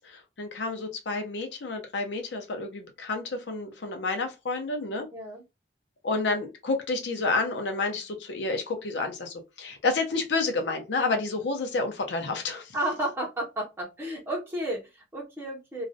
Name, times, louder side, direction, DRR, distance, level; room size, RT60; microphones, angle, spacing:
voice 1, 0.4-5.1 6.0-12.6, left 3 dB, 70° left, 0.6 m, -29 dB
voice 2, 5.1-5.4 12.7-15.8, right 1 dB, 15° right, 0.5 m, -32 dB
2.4 x 2.0 x 2.6 m
head